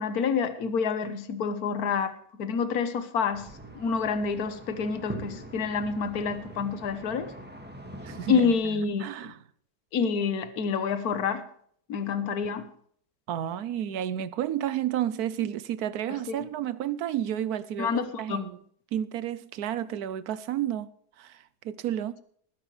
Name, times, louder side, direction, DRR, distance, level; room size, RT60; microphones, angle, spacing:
voice 1, 0.0-3.5 3.7-7.3 8.3-9.3 9.9-11.4 11.9-12.7 16.3-16.5 17.8-18.5, left 6 dB, 65° left, 1.6 m, -28 dB
sound 1, 3.3-8.5, right 1 dB, 5° right, 1.8 m, -43 dB
voice 2, 8.0-9.4 13.3-18.6 18.9-20.9 21.2-22.2, right 11 dB, 70° right, 1.2 m, -31 dB
20.0 x 10.5 x 3.3 m
omnidirectional pair, 1.7 m